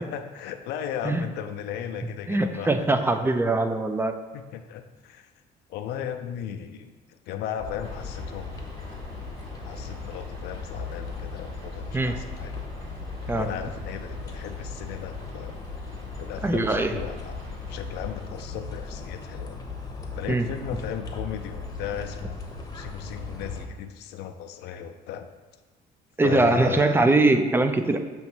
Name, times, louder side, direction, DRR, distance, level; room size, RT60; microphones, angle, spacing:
voice 1, 0.0-3.3 4.3-5.3 5.7-8.5 9.6-12.5 13.3-15.6 16.2-19.6 20.1-22.4 22.7-25.3 26.2-27.1, left 9 dB, 80° left, 7 dB, 0.5 m, -36 dB
voice 2, 2.3-4.1 11.9-12.1 13.3-13.5 16.4-17.0 20.3-20.4 26.2-28.0, right 2 dB, 15° right, 7 dB, 0.5 m, -22 dB
sound 1, 7.6-23.7, left 4 dB, 20° left, 0.9 m, -37 dB
sound 2, 7.8-18.8, left 1 dB, 85° right, 2.0 m, -46 dB
7.0 x 3.1 x 6.0 m, 1.3 s
cardioid pair, 110°, 17 cm